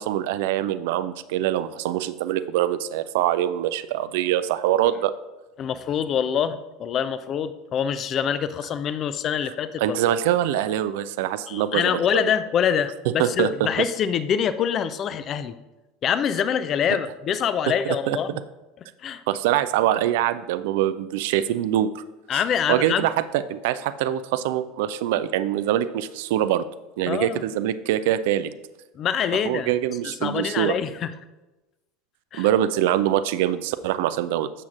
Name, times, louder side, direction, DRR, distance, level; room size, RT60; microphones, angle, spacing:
voice 1, 0.0-5.1 9.8-12.3 13.2-13.7 17.9-18.2 19.3-22.0 22.3-22.4 22.7-26.7 27.0-28.5 29.4-30.8 32.4-34.5, right 12 dB, 60° right, 13 dB, 0.4 m, -24 dB
voice 2, 5.6-10.0 11.5-15.5 16.0-18.4 19.0-19.2 22.3-23.1 27.1-27.4 29.0-29.7 30.0-31.1 32.3-32.5, left 8 dB, 35° left, 13 dB, 0.4 m, -25 dB
12.0 x 7.1 x 2.5 m, 1.1 s
figure-of-eight pair, 75°, 0 cm